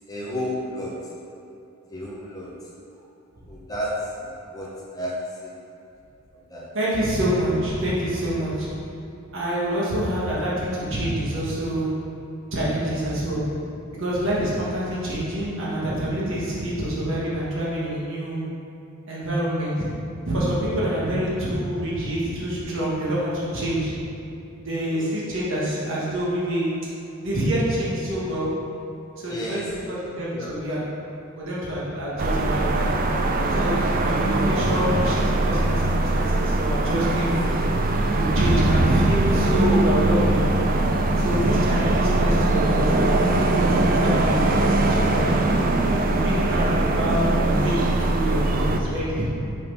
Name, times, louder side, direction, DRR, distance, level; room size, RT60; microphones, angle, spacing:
voice 1, 0.1-1.0 1.9-2.5 3.5-4.1 4.5-5.5 6.5-6.7 24.9-25.1 29.3-29.7 30.3-30.5, equal, 20° left, -5 dB, 0.8 m, -31 dB
voice 2, 6.7-8.7 9.3-11.9 12.5-13.4 13.9-18.4 19.1-19.7 20.2-23.9 24.6-26.7 27.2-28.5 29.2-30.8 31.3-32.9 33.5-37.3 38.1-40.4 41.2-45.6 46.1-49.3, right 1 dB, 65° right, -7 dB, 1.4 m, -26 dB
sound 1, 32.2-48.8, right 2 dB, 40° right, 0.4 m, -21 dB
5.6 x 4.3 x 5.5 m, 2.8 s
head